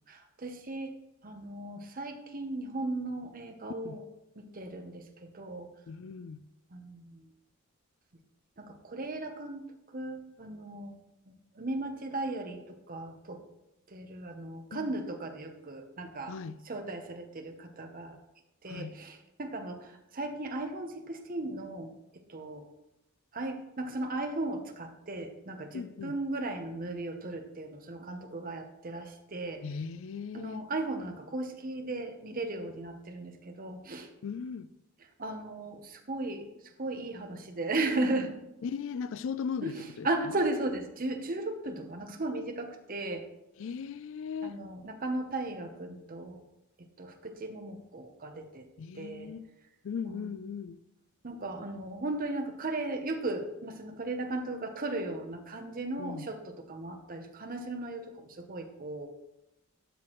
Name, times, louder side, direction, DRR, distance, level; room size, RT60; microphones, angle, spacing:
voice 1, 0.1-0.9 1.2-4.0 4.4-5.7 6.7-7.2 8.6-9.6 9.9-11.0 11.3-13.4 13.9-16.4 16.6-18.2 18.6-21.9 22.3-22.7 23.3-29.6 30.3-34.1 35.2-36.5 36.8-38.3 39.6-43.3 44.4-46.4 47.0-48.7 48.9-49.3 50.1-50.3 51.2-59.1, right 2 dB, 40° right, 0.9 m, -36 dB
voice 2, 5.9-6.4 14.7-14.9 16.3-16.6 18.7-19.0 25.7-26.2 29.6-30.6 34.2-34.7 38.6-40.4 43.6-44.5 48.8-49.5 49.8-50.8 56.0-56.3, left 6 dB, 60° left, 0.3 m, -38 dB
12.0 x 6.0 x 3.1 m
head